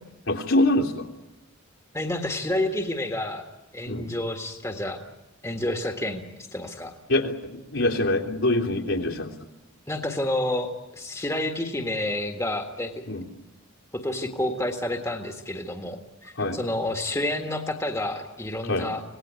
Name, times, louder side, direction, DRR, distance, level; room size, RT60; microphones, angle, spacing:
voice 1, 0.3-1.0 3.9-4.1 7.1-7.3 7.7-9.3 13.1-13.2 16.4-16.6 18.7-18.9, left 1 dB, 70° left, -1 dB, 3.2 m, -24 dB
voice 2, 1.9-3.4 3.7-5.0 5.4-6.9 9.9-13.0 13.9-19.0, left 1 dB, 15° left, 5 dB, 1.6 m, -29 dB
26.0 x 19.0 x 9.5 m, 1.0 s
head